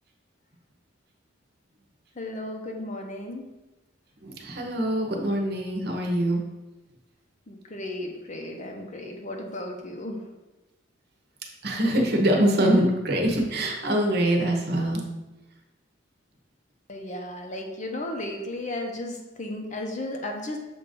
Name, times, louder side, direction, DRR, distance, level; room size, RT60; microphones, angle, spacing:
voice 1, 2.2-3.5 7.5-10.3 16.9-20.6, left 1 dB, 35° left, 2 dB, 0.7 m, -34 dB
voice 2, 4.2-6.4 11.6-15.0, right 1 dB, 50° right, 1 dB, 0.9 m, -24 dB
6.9 x 2.6 x 5.2 m, 1.1 s
head